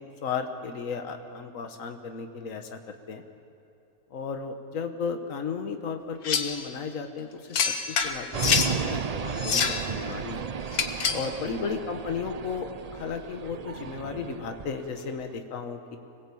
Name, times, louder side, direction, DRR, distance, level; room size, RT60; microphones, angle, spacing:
voice 1, 0.0-3.2 4.1-10.5 11.1-12.7 12.9-16.0, left 5 dB, 65° left, 6 dB, 1.6 m, -34 dB
sound 1, 6.2-6.6 7.5-8.7 9.3-9.9 10.7-11.3, left 6 dB, 80° left, 1.7 m, -26 dB
sound 2, 8.3-15.3, right 6 dB, 75° right, 0.3 m, -34 dB
25.5 x 19.0 x 8.5 m, 2.7 s
omnidirectional pair, 1.5 m